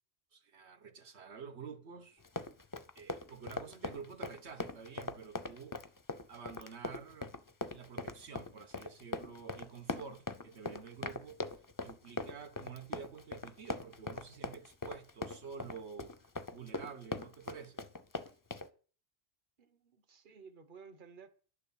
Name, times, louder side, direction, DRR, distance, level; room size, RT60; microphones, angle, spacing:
voice 1, 0.3-2.2 2.9-5.9 6.3-7.3 7.7-11.5 11.8-17.8, right 6 dB, 90° right, 1.6 m, -49 dB
Run, 2.2-18.7, left 2 dB, 25° left, 0.5 m, -41 dB
voice 2, 3.4-4.1 18.2-18.3 19.6-21.3, right 5 dB, 50° right, 1.2 m, -56 dB
11.0 x 6.7 x 7.2 m
omnidirectional pair, 1.1 m